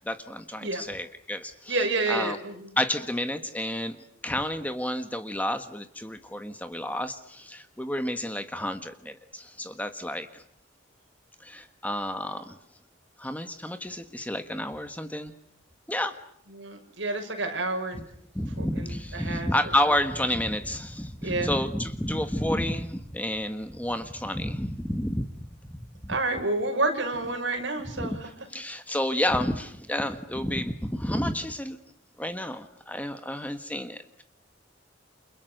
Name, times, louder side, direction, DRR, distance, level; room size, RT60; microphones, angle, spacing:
voice 1, 0.0-1.7 2.1-2.4 2.8-4.0 4.2-10.4 11.4-12.6 13.2-15.3 15.9-16.2 18.3-25.3 25.7-26.2 28.0-28.1 28.5-31.8 32.2-34.2, left 1 dB, 10° left, 8 dB, 1.4 m, -30 dB
voice 2, 1.7-2.7 16.6-18.0 18.6-19.5 21.2-21.5 26.1-28.3, right 2 dB, 70° right, 4 dB, 6.4 m, -29 dB
30.0 x 28.5 x 6.6 m, 0.68 s
head